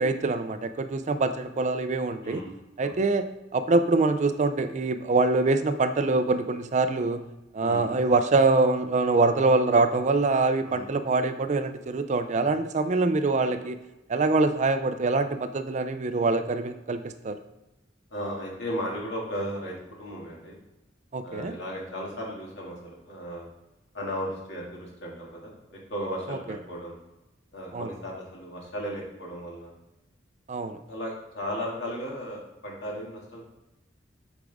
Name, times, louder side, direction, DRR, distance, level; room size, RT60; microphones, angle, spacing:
voice 1, 0.0-2.4 2.8-7.2 7.5-13.8 14.1-17.4 21.1-21.5 26.3-26.4 27.7-27.9 30.5-30.8, right 3 dB, 40° right, 10 dB, 0.4 m, -24 dB
voice 2, 7.6-7.9 10.6-10.9 18.1-20.6 21.2-23.5 23.9-27.0 27.5-29.7 30.9-33.4, equal, 70° left, -3 dB, 2.2 m, -35 dB
8.2 x 5.1 x 3.5 m, 0.97 s
head